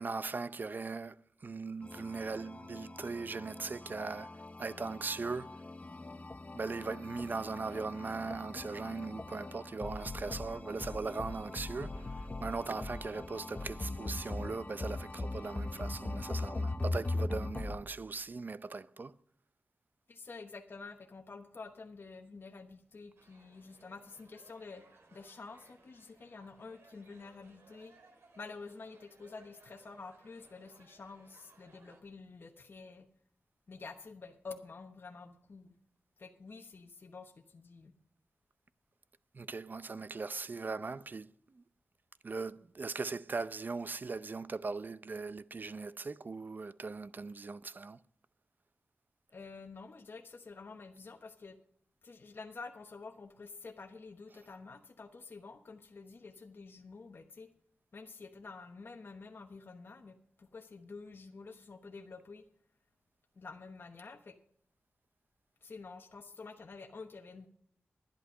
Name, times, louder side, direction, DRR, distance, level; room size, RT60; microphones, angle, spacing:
voice 1, 0.0-4.3 4.6-5.6 6.5-19.1 39.3-41.6 42.2-48.0, right 4 dB, 45° right, 0.5 m, -39 dB
sound 1, 1.8-17.8, left 2 dB, 35° left, 0.9 m, -40 dB
voice 2, 20.1-27.9 28.4-33.1 33.7-35.7 36.2-37.9 49.3-51.6 52.0-57.5 57.9-62.4 63.4-64.3 65.6-67.5, left 4 dB, 55° left, 1.0 m, -49 dB
sound 2, 23.2-32.0, right 3 dB, 80° right, 2.1 m, -63 dB
11.0 x 10.5 x 5.5 m
wide cardioid pair, 70°, 4 cm